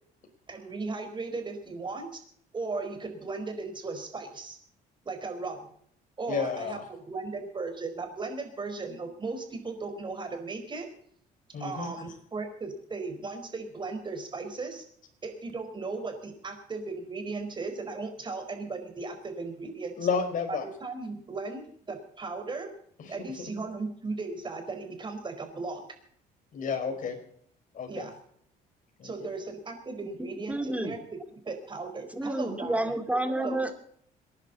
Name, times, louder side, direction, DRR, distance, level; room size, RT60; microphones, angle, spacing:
voice 1, 0.5-2.2 2.5-4.6 5.0-5.7 6.2-6.8 7.1-10.9 11.6-14.8 15.2-20.0 20.5-22.7 23.1-25.8 27.9-28.1 29.0-31.2 31.4-32.8 33.3-33.7, right 3 dB, 25° right, 7 dB, 4.6 m, -36 dB
voice 2, 6.3-6.9 11.5-11.9 20.0-20.7 23.0-23.5 26.5-27.2 27.7-28.1 29.0-29.3, left 6 dB, 50° left, 5 dB, 4.8 m, -32 dB
voice 3, 30.2-31.0 32.1-33.7, right 1 dB, 10° right, 8 dB, 2.5 m, -30 dB
27.5 x 11.0 x 4.1 m, 0.64 s
cardioid pair, 110°, 17 cm